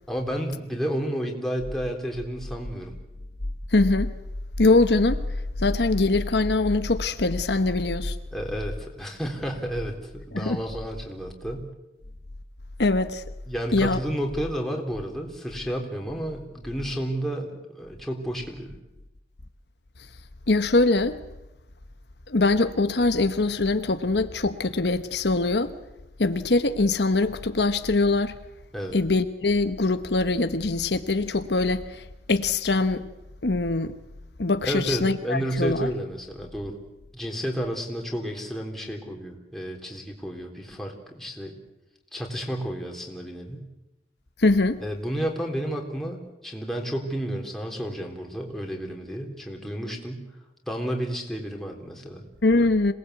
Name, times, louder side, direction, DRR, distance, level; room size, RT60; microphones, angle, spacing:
voice 1, 0.1-3.0 8.3-11.7 13.5-18.7 28.7-29.0 34.6-36.8 37.1-41.5 42.1-43.7 44.8-50.2 50.7-52.2, equal, ahead, 3.6 m, -31 dB
voice 2, 3.7-4.1 4.6-5.2 5.6-8.2 10.3-10.6 12.8-13.2 13.7-14.0 20.5-21.2 22.3-25.7 26.2-28.3 28.9-33.1 33.4-33.9 34.4-35.9 44.4-44.8 52.4-52.9, left 2 dB, 70° left, 1.1 m, -23 dB
26.5 x 19.0 x 8.2 m
head